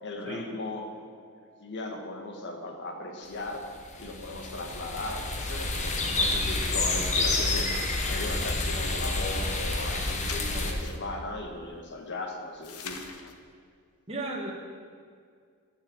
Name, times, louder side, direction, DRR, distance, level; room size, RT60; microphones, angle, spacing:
voice 1, 0.0-0.9 1.2-3.6 4.0-7.7 8.1-13.0, left 2 dB, 55° left, 3 dB, 1.5 m, -37 dB
sound 1, 3.6-10.7, left 2 dB, 35° left, 1.2 m, -29 dB
sound 2, 7.4-7.9 10.0-11.1 12.6-13.3, left 6 dB, 90° left, 1.0 m, -43 dB
voice 2, 14.1-14.5, right 2 dB, 25° right, -1 dB, 1.4 m, -34 dB
9.8 x 6.6 x 8.9 m, 2.1 s
head